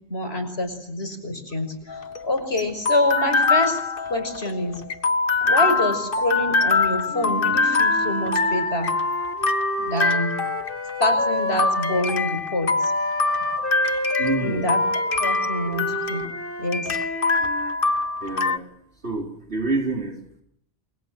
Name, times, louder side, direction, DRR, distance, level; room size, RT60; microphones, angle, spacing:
voice 1, 0.1-3.8 4.1-4.8 5.5-8.9 9.8-10.4 11.0-12.9 14.4-14.8 15.2-16.2 16.6-16.9, left 1 dB, 75° left, 8 dB, 6.1 m, -26 dB
sound 1, 1.9-18.6, left 3 dB, 60° left, 1.5 m, -24 dB
Wind instrument woodwind instrument, 7.1-12.1 12.8-17.8, left 1 dB, 10° left, 2.8 m, -32 dB
voice 2, 14.2-14.6 18.2-18.7 19.0-20.4, right 3 dB, 85° right, 1 dB, 4.3 m, -27 dB
30.0 x 24.0 x 7.8 m, 0.70 s
omnidirectional pair, 1.1 m